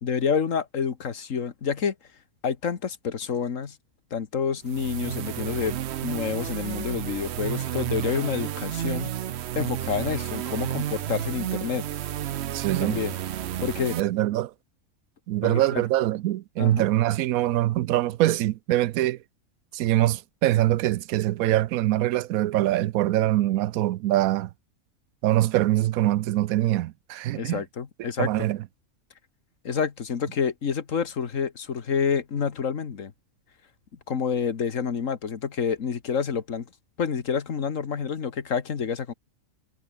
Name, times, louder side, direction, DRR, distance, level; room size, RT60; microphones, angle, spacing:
voice 1, 0.0-2.0 2.4-3.8 4.1-9.1 9.6-11.8 12.8-13.1 13.6-14.0 15.4-15.8 16.6-16.8 27.4-28.5 29.6-33.1 34.1-36.7 37.0-39.1, left 6 dB, 65° left, 1.8 m, -28 dB
sound 1, 4.6-14.0, right 11 dB, 60° right, 0.8 m, -31 dB
voice 2, 12.5-13.0 14.0-14.5 15.3-19.2 19.7-24.5 25.2-27.6 28.2-28.6, right 15 dB, 85° right, 1.0 m, -23 dB
omnidirectional pair, 1.4 m